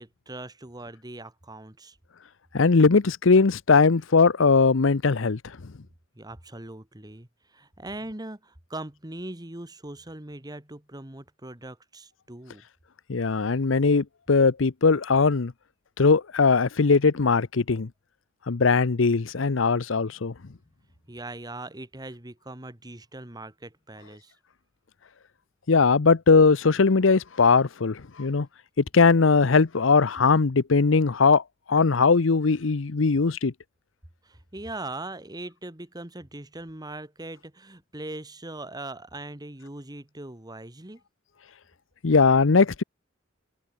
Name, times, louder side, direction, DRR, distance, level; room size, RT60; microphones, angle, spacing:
voice 1, 0.0-2.0 6.2-12.6 21.1-24.4 34.2-41.0, right 2 dB, 20° right, 1.9 m, -40 dB
voice 2, 2.5-5.4 13.1-15.5 16.0-17.9 18.5-20.3 25.7-28.5 28.8-31.4 31.7-33.5 42.0-42.8, left 4 dB, 80° left, 0.7 m, -20 dB
head